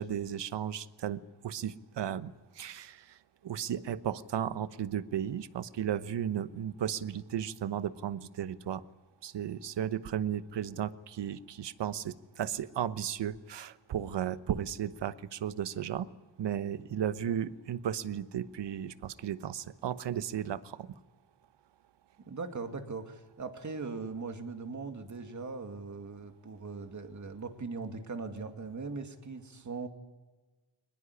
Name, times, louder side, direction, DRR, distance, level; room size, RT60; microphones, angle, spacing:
voice 1, 0.0-3.2 3.4-8.8 9.2-16.1 16.4-20.9, right 9 dB, 65° right, 14 dB, 1.1 m, -35 dB
voice 2, 22.3-29.9, right 4 dB, 40° right, 6 dB, 2.4 m, -40 dB
22.5 x 20.5 x 9.9 m, 1.2 s
cardioid pair, 115°, 46 cm